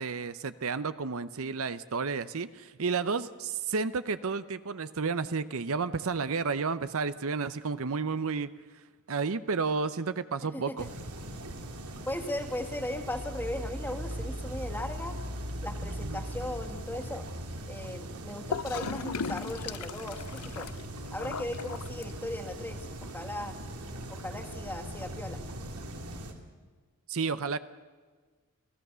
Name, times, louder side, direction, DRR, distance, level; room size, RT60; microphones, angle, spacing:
voice 1, 0.0-8.5 9.1-10.9 16.0-16.2 27.1-27.6, right 4 dB, 65° right, 13 dB, 0.7 m, -31 dB
voice 2, 10.5-10.9 12.0-15.2 15.6-17.3 17.7-20.7 21.1-23.6 24.1-25.4, left 1 dB, 10° left, 5 dB, 2.0 m, -37 dB
sound 1, 10.8-26.3, right 1 dB, 80° right, 2.8 m, -40 dB
Gurgling / Toilet flush, 18.5-22.5, left 5 dB, 85° left, 0.7 m, -37 dB
28.5 x 17.0 x 6.9 m, 1.4 s
head